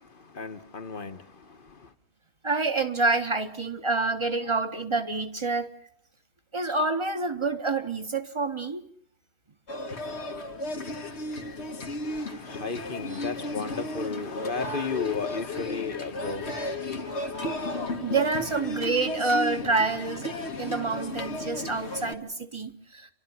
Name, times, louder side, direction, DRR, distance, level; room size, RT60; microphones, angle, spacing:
voice 1, 0.3-1.2 12.1-16.5, left 4 dB, 55° left, 1.3 m, -34 dB
voice 2, 2.4-5.7 6.5-8.8 15.7-15.8 18.0-23.1, right 3 dB, 25° right, 1.5 m, -27 dB
sound 1, 9.7-22.1, left 2 dB, 90° left, 1.8 m, -34 dB
29.0 x 12.5 x 9.4 m
omnidirectional pair, 1.1 m